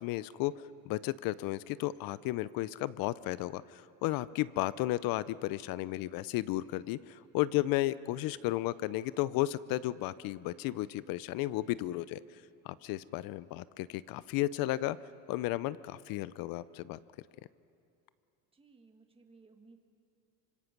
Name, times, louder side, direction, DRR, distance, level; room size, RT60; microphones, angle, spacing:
voice 1, 0.0-12.2 12.6-15.0 15.3-17.0, left 16 dB, 55° left, 18 dB, 0.6 m, -33 dB
voice 2, 18.5-19.8, right 4 dB, 15° right, 5 dB, 1.7 m, -59 dB
26.0 x 25.5 x 6.0 m, 2.6 s
cardioid pair, 145°, 43 cm